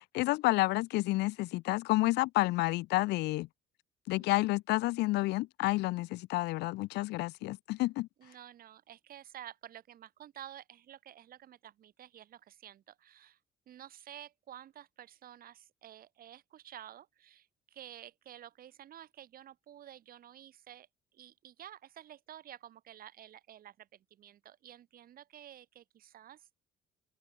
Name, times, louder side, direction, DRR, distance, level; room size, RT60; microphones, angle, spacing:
voice 1, 0.1-3.5 4.1-8.1, left 20 dB, 85° left, 0.7 m, -30 dB
voice 2, 8.2-13.4 13.7-20.9 21.1-26.6, right 11 dB, 60° right, 6.7 m, -51 dB
open air
cardioid pair, 110°, 17 cm